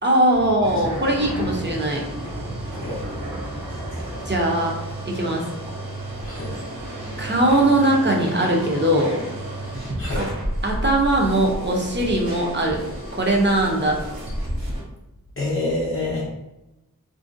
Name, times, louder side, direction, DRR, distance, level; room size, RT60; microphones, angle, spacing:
voice 1, 0.0-2.0 4.2-4.8 5.0-5.4 7.2-9.2 10.1-10.2 10.6-12.8 13.1-14.0, right 1 dB, 30° right, -1 dB, 0.5 m, -20 dB
sound 1, 0.6-14.8, right 1 dB, 80° right, 0.7 m, -31 dB
voice 2, 15.4-16.3, left 2 dB, 35° left, -6 dB, 0.6 m, -26 dB
2.5 x 2.1 x 2.5 m, 0.95 s
wide cardioid pair, 45°, 36 cm